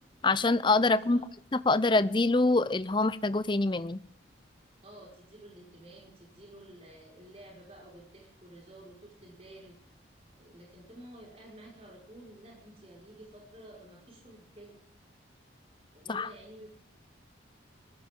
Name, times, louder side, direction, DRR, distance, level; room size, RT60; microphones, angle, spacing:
voice 1, 0.2-1.2 1.7-4.0 16.1-16.3, left 3 dB, 25° left, 15 dB, 0.6 m, -25 dB
voice 2, 4.8-9.9 10.4-14.8 15.9-16.7, right 1 dB, 30° right, -2 dB, 5.1 m, -51 dB
21.0 x 14.5 x 3.8 m, 0.63 s
head